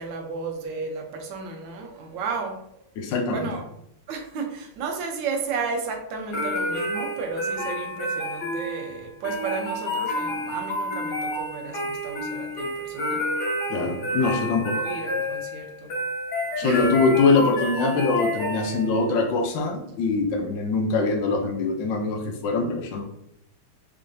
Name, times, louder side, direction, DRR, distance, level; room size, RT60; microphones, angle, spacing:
voice 1, 0.0-2.9 3.3-3.6 4.1-13.2 14.1-14.3 14.7-15.9 16.6-16.9, right 4 dB, 70° right, 3 dB, 1.2 m, -33 dB
voice 2, 3.0-3.5 13.7-14.7 16.6-23.0, left 3 dB, 75° left, 3 dB, 1.1 m, -23 dB
sound 1, 6.3-19.1, left 1 dB, 55° left, 1.4 m, -29 dB
3.7 x 3.4 x 2.6 m, 0.75 s
omnidirectional pair, 2.4 m